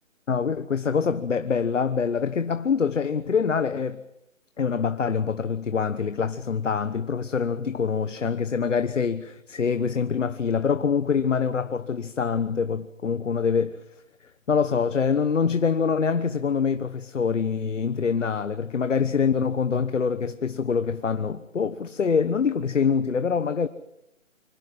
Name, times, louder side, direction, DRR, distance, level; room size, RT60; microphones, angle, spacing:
voice 1, 0.3-4.0 4.6-13.8 14.5-23.7, left 6 dB, 65° left, 1.3 m, -25 dB
25.5 x 17.0 x 7.5 m
hypercardioid pair, 165°, 39 cm